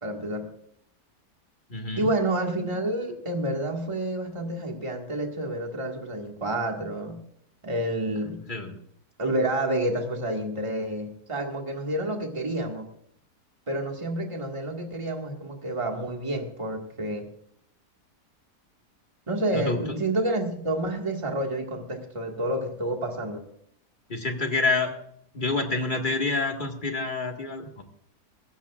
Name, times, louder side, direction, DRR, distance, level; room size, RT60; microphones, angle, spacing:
voice 1, 0.0-0.5 1.9-7.2 7.6-8.4 9.2-12.9 13.7-17.3 19.3-23.5, right 1 dB, 20° right, 2 dB, 1.9 m, -29 dB
voice 2, 1.7-2.1 8.5-8.8 19.5-19.8 24.1-24.9 25.3-27.8, left 3 dB, 30° left, 2 dB, 2.0 m, -27 dB
21.0 x 16.0 x 2.5 m, 0.68 s
omnidirectional pair, 1.7 m